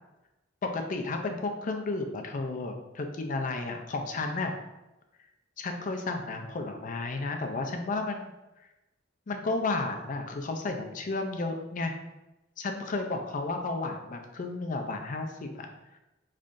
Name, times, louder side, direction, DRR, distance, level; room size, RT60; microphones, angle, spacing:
voice 1, 0.6-4.6 5.6-8.3 9.3-12.0 12.6-15.7, left 3 dB, 45° left, 4 dB, 0.4 m, -32 dB
5.2 x 3.2 x 2.5 m, 0.99 s
head